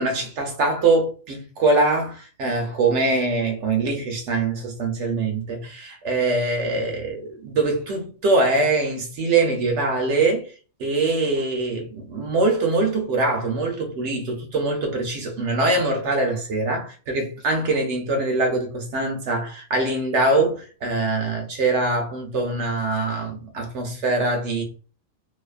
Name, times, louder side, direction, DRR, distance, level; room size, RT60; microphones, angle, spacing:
voice 1, 0.0-10.5 10.8-24.6, right 2 dB, 70° right, 0.9 m, -23 dB
2.6 x 2.3 x 2.4 m
omnidirectional pair, 1.3 m